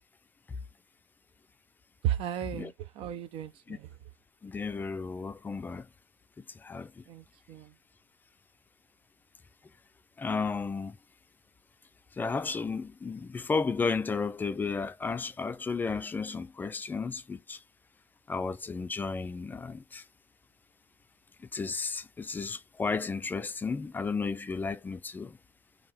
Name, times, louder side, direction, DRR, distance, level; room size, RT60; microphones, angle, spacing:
voice 1, 2.0-4.0 7.1-7.7, right 11 dB, 70° right, 0.5 m, -35 dB
voice 2, 4.4-5.9 6.6-7.0 10.2-11.0 12.2-17.6 18.3-20.0 21.5-25.4, left 4 dB, 20° left, 0.3 m, -33 dB
2.8 x 2.7 x 4.2 m
cardioid pair, 135°, 10 cm